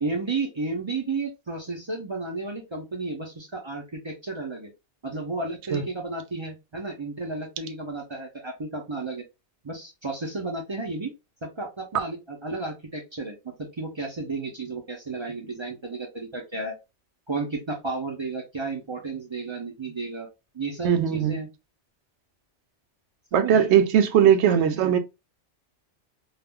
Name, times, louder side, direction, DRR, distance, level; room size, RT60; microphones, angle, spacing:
voice 1, 0.0-4.7 5.0-9.2 9.6-11.1 11.4-16.8 17.3-20.3 20.5-21.5 23.3-23.7 24.4-24.9, right 3 dB, 35° right, 0.4 m, -32 dB
voice 2, 20.8-21.4 23.3-25.0, right 9 dB, 75° right, 0.8 m, -19 dB
2.4 x 2.1 x 3.5 m
omnidirectional pair, 1.2 m